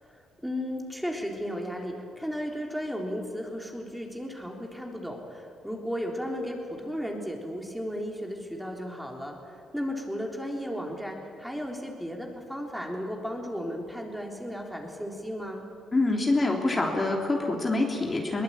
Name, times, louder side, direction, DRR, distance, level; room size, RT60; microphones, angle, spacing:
voice 1, 0.0-15.7, equal, ahead, 0 dB, 3.7 m, -35 dB
voice 2, 15.9-18.4, left 2 dB, 25° left, 0 dB, 3.3 m, -25 dB
22.5 x 19.0 x 8.9 m, 2.5 s
cardioid pair, 90°, 0 cm